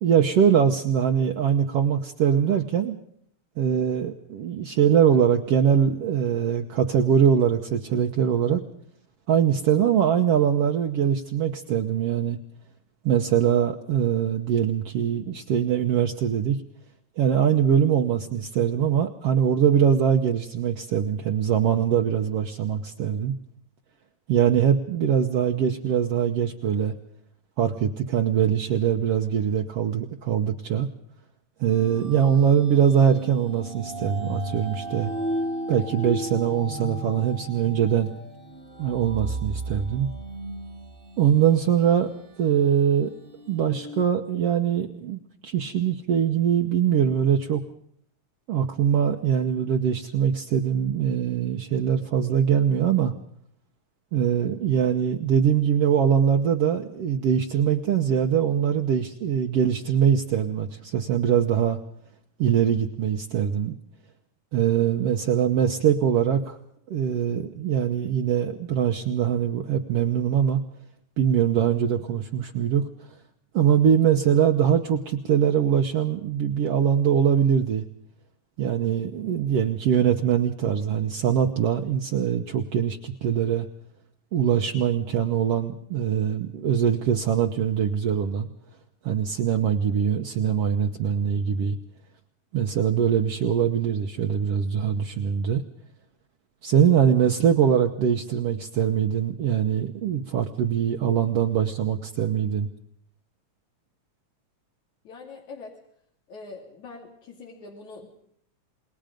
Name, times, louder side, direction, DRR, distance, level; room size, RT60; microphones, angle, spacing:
voice 1, 0.0-3.0 3.6-8.6 9.3-12.4 13.1-16.6 17.2-23.3 24.3-26.9 27.6-30.9 31.6-35.1 35.7-38.1 38.8-40.1 41.2-43.1 43.5-47.6 48.5-53.1 54.1-61.8 62.4-63.7 64.5-66.6 66.9-70.6 71.2-72.9 73.5-77.8 78.6-83.7 84.3-88.5 89.0-91.8 92.5-95.6 96.6-102.7, right 8 dB, 65° right, 3 dB, 1.8 m, -22 dB
sound 1, 31.7-44.0, right 1 dB, 25° right, 1.4 m, -35 dB
voice 2, 105.0-105.8 106.3-108.1, left 3 dB, 75° left, 0 dB, 3.9 m, -43 dB
28.0 x 21.0 x 5.1 m, 0.67 s
omnidirectional pair, 3.4 m